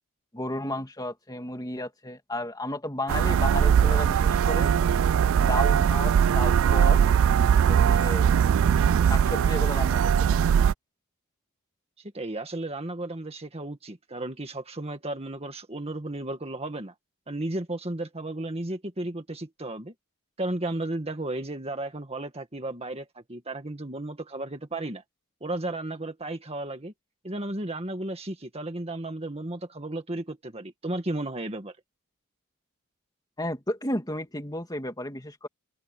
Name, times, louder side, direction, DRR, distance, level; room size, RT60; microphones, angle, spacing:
voice 1, 0.3-4.7 5.4-7.0 7.7-8.3 9.0-10.4 33.4-35.5, left 1 dB, 15° left, 2.9 m, -33 dB
sound 1, 3.1-10.7, right 8 dB, 65° right, 0.3 m, -21 dB
voice 2, 12.1-16.9 17.3-19.9 20.4-25.0 25.4-26.9 27.2-31.7, right 2 dB, 30° right, 1.9 m, -34 dB
head